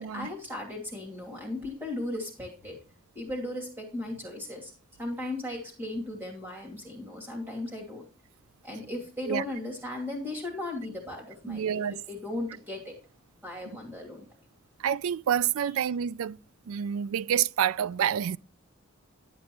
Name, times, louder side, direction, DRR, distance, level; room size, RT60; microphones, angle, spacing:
voice 1, 0.0-2.8 3.1-4.7 5.0-8.1 8.6-12.9 13.4-14.3, left 1 dB, 10° right, 2.6 m, -36 dB
voice 2, 11.5-12.0 14.8-16.4 16.7-18.4, right 9 dB, 70° right, 0.3 m, -28 dB
11.0 x 8.3 x 3.0 m
head